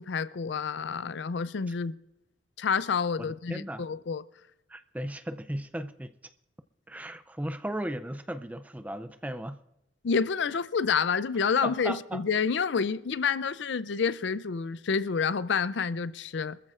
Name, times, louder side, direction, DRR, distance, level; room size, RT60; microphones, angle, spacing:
voice 1, 0.0-1.9 2.6-4.2 10.0-16.6, left 5 dB, 65° left, 0.4 m, -28 dB
voice 2, 3.2-3.9 4.7-6.1 6.9-9.6 11.6-12.2, right 1 dB, 10° right, 0.4 m, -36 dB
25.0 x 14.0 x 2.5 m
head